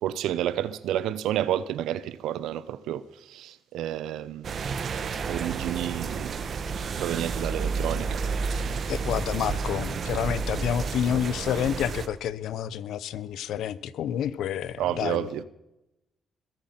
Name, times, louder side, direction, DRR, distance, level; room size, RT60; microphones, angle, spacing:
voice 1, 0.0-3.0 3.3-4.7 5.3-6.4 7.0-8.2 14.8-15.4, right 11 dB, 85° right, 0.8 m, -30 dB
sound 1, 4.4-12.1, right 5 dB, 50° right, 1.4 m, -31 dB
voice 2, 8.9-15.3, left 9 dB, 80° left, 0.8 m, -29 dB
21.5 x 8.9 x 5.9 m
cardioid pair, 90°, 0 cm